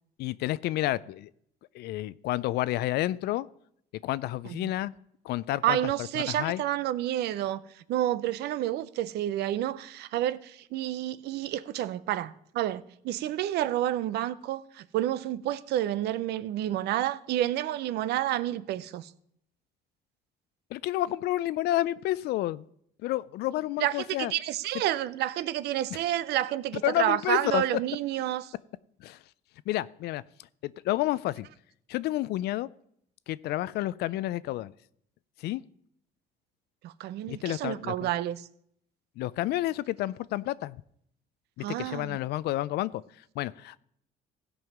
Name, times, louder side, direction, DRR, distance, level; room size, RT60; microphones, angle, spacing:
voice 1, 0.2-1.3 1.7-3.5 4.0-4.9 5.2-5.8 6.2-6.6 20.7-22.6 23.0-24.3 26.8-27.6 29.0-29.2 29.7-30.2 30.6-31.5 31.9-32.7 33.3-34.7 35.4-35.6 37.3-38.1 39.2-40.8 41.6-43.0 43.4-43.8, left 15 dB, 75° left, 0.4 m, -30 dB
voice 2, 5.6-7.6 7.9-19.1 23.8-28.5 36.8-38.5 41.6-42.2, right 13 dB, 75° right, 0.6 m, -30 dB
16.0 x 5.5 x 6.0 m
cardioid pair, 110°, 17 cm